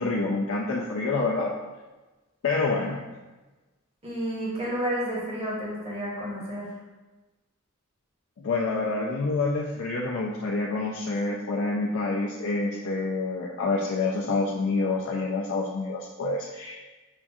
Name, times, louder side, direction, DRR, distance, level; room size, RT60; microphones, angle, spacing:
voice 1, 0.0-1.5 2.4-3.0 8.4-16.8, left 3 dB, 65° left, -3 dB, 0.4 m, -27 dB
voice 2, 4.0-6.7, equal, 30° right, -6 dB, 1.0 m, -31 dB
5.8 x 2.6 x 2.3 m, 1.2 s
head